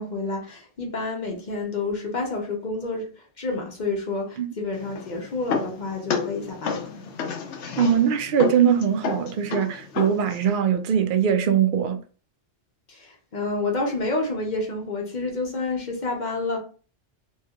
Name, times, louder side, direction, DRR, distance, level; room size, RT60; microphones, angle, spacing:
voice 1, 0.0-3.1 3.4-6.9 12.9-16.6, left 3 dB, 45° left, 0.8 m, -29 dB
sound 1, 4.7-10.5, left 6 dB, 80° left, 0.9 m, -32 dB
voice 2, 7.8-12.0, right 8 dB, 60° right, 0.6 m, -21 dB
3.2 x 3.1 x 2.3 m
omnidirectional pair, 1.2 m